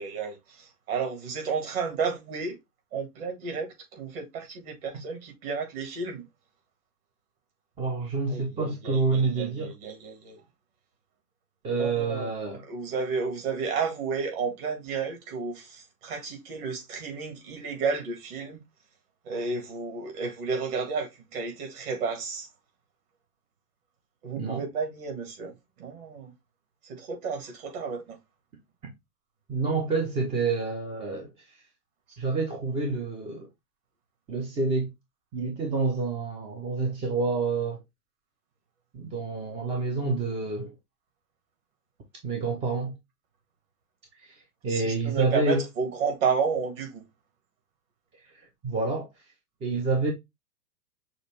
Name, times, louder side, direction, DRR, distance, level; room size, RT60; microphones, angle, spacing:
voice 1, 0.0-2.6 2.9-6.2 8.3-10.4 11.7-12.3 12.6-18.6 19.3-22.5 24.2-26.3 26.8-28.2 44.7-47.0, right 5 dB, 40° right, 2.0 m, -32 dB
voice 2, 7.8-9.7 11.6-12.6 24.4-24.6 28.8-28.9 29.5-31.3 32.2-33.5 34.3-34.9 35.3-37.8 38.9-40.7 42.2-43.0 44.2-45.6 48.3-49.1 49.6-50.1, right 3 dB, 15° right, 0.6 m, -28 dB
6.3 x 2.4 x 3.2 m
hypercardioid pair, 115°, 47 cm